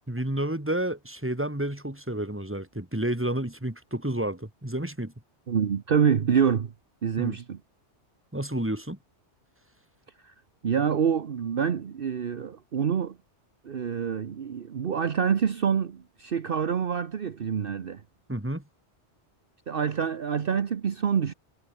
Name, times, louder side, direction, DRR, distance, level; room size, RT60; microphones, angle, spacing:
voice 1, 0.1-5.1 7.2-7.4 8.3-9.0 18.3-18.6, right 1 dB, 10° right, 2.6 m, -30 dB
voice 2, 5.5-6.7 7.0-7.6 10.2-10.3 10.6-13.2 13.6-18.0 19.7-21.3, right 7 dB, 55° right, 1.1 m, -26 dB
omnidirectional pair, 1.2 m